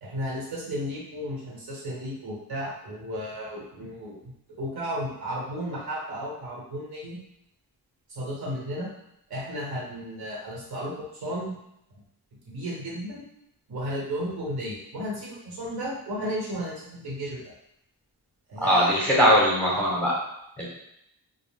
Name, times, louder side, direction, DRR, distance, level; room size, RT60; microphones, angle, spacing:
voice 1, 0.0-7.2 8.1-8.9 9.3-11.6 12.4-13.3 13.7-17.4 18.5-18.9, equal, 65° right, -4 dB, 1.1 m, -34 dB
voice 2, 18.6-20.1 20.6-20.7, equal, 5° left, -6 dB, 0.8 m, -20 dB
2.4 x 2.1 x 3.4 m, 0.78 s
cardioid pair, 105°, 39 cm